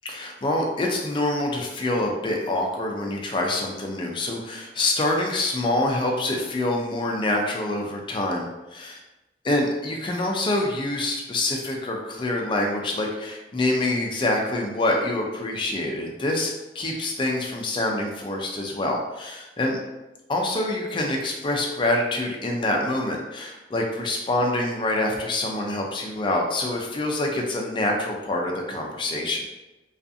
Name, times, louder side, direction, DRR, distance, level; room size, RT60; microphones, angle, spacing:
voice 1, 0.0-9.0 9.4-19.8 20.3-29.4, left 1 dB, 25° left, 1 dB, 0.4 m, -26 dB
2.5 x 2.4 x 2.5 m, 1.0 s
head